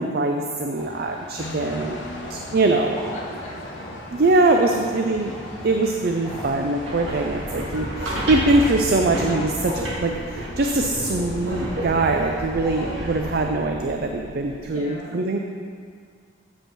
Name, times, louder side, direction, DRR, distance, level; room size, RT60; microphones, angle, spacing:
voice 1, 0.0-2.0 2.3-3.0 4.1-5.3 5.6-15.4, right 2 dB, 50° right, 3 dB, 0.4 m, -22 dB
sound 1, 0.8-13.5, left 1 dB, ahead, 2.2 m, -40 dB
sound 2, 1.4-12.0, left 2 dB, 65° left, 0.8 m, -41 dB
voice 2, 2.8-4.0 4.7-6.1 14.7-15.2, left 1 dB, 35° left, -5 dB, 1.7 m, -41 dB
sound 3, 6.7-14.6, right 1 dB, 85° right, 1.7 m, -31 dB
8.4 x 5.3 x 6.0 m, 2.1 s
head